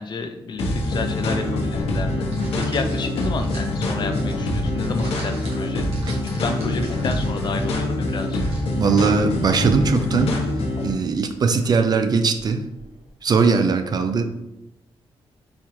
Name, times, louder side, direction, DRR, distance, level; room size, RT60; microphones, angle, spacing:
voice 1, 0.0-2.3 2.6-5.9 6.3-8.4, left 4 dB, 45° left, 7 dB, 0.4 m, -30 dB
sound 1, 0.6-10.9, left 1 dB, 75° left, 0.8 m, -25 dB
sound 2, 1.7-13.1, right 1 dB, 75° right, 1.5 m, -45 dB
voice 2, 8.8-10.4 10.8-12.7 13.2-14.2, right 5 dB, 40° right, 8 dB, 0.4 m, -20 dB
4.3 x 3.6 x 3.0 m, 0.89 s
wide cardioid pair, 145°, 10 cm